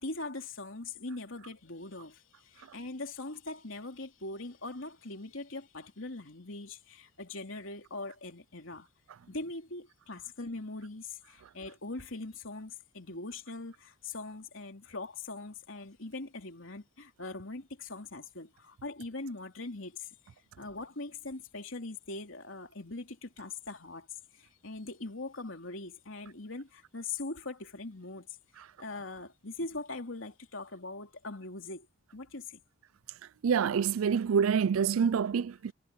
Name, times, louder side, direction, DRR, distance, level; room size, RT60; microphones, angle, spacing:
voice 1, 0.0-8.9 9.3-20.1 20.6-24.1 24.4-28.3 28.8-31.9 32.1-32.6, left 2 dB, 75° left, 3.1 m, -41 dB
voice 2, 33.4-35.7, right 7 dB, 85° right, 0.4 m, -26 dB
head